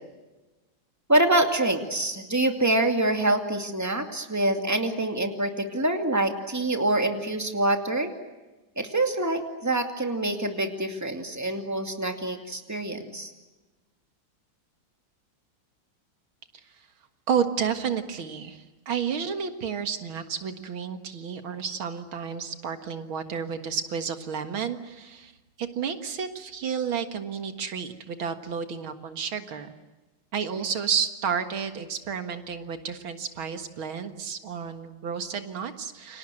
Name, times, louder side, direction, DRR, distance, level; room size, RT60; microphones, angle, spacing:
voice 1, 1.1-8.1 8.8-13.3, right 1 dB, 10° right, 5 dB, 2.3 m, -25 dB
voice 2, 17.3-25.3 25.6-29.7 30.3-36.2, right 7 dB, 75° right, 8 dB, 2.5 m, -31 dB
29.5 x 25.0 x 7.8 m, 1.2 s
omnidirectional pair, 2.2 m